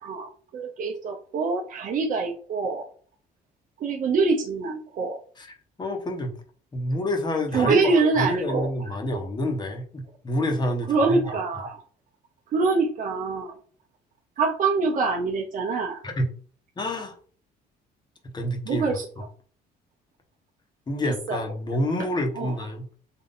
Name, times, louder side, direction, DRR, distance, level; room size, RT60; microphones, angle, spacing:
voice 1, 0.0-2.9 3.8-5.2 7.5-8.9 10.9-11.8 12.5-13.6 14.4-16.0 18.7-19.0 21.3-21.4 22.0-22.1 22.4-22.5, right 4 dB, 50° right, 0.8 m, -25 dB
voice 2, 5.4-6.3 6.7-11.3 11.6-11.7 16.0-16.3 16.8-17.1 18.3-19.2 20.9-22.9, left 1 dB, 25° left, 1.2 m, -28 dB
3.8 x 2.7 x 4.1 m
cardioid pair, 110°, 17 cm